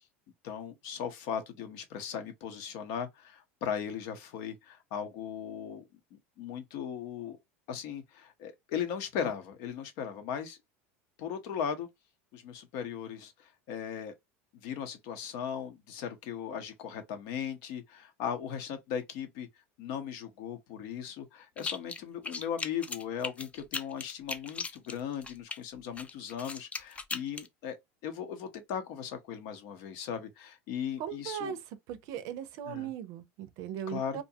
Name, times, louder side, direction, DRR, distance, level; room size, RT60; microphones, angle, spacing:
voice 1, 0.4-5.8 6.1-7.4 7.7-10.6 11.2-11.9 12.3-14.1 14.6-19.5 19.8-27.8 28.0-31.6 32.7-32.9 33.9-34.2, left 8 dB, 65° left, 0.8 m, -38 dB
sound 1, 21.6-22.0 22.2-25.6 26.0-27.5, left 4 dB, 20° left, 0.4 m, -38 dB
voice 2, 31.0-31.6 31.9-34.2, right 9 dB, 60° right, 0.5 m, -38 dB
2.6 x 2.2 x 2.7 m
supercardioid pair, 105°, 7 cm